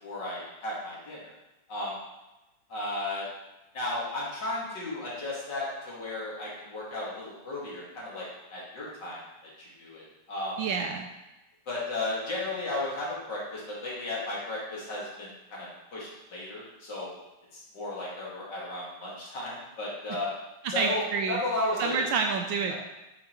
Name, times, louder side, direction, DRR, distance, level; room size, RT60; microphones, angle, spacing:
voice 1, 0.0-1.3 1.7-2.0 2.7-3.3 3.7-8.2 8.5-9.2 9.6-10.6 11.7-17.1 17.5-20.3 20.7-21.0 21.3-22.1, left 2 dB, 55° left, -6 dB, 2.6 m, -34 dB
voice 2, 10.6-11.1 20.6-21.4 21.8-22.8, right 5 dB, 75° right, 3 dB, 1.2 m, -28 dB
8.6 x 5.8 x 3.0 m, 0.99 s
omnidirectional pair, 2.4 m